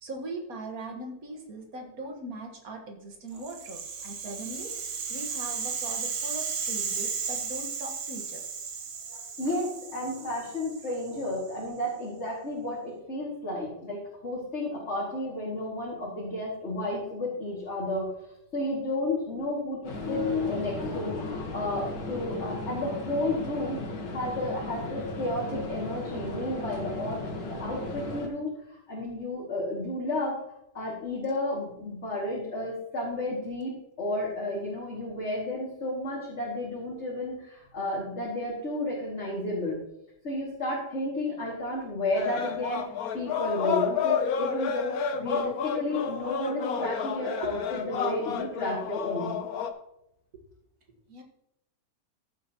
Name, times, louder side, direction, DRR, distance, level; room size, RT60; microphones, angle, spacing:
voice 1, 0.0-4.7 5.1-8.4 47.2-47.9 50.3-50.4 51.1-51.2, right 2 dB, 60° right, 3 dB, 2.0 m, -40 dB
Rattle (instrument), 3.4-11.6, right 6 dB, 85° right, 1.8 m, -35 dB
voice 2, 9.1-30.3 30.7-33.7 34.0-39.8 40.2-42.8 43.1-49.4, left 1 dB, 40° left, -6 dB, 2.6 m, -32 dB
sound 1, 19.8-28.3, left 2 dB, 85° left, 2.1 m, -36 dB
sound 2, 42.1-49.7, left 7 dB, 65° left, 1.2 m, -30 dB
14.5 x 7.9 x 3.0 m, 0.80 s
omnidirectional pair, 1.8 m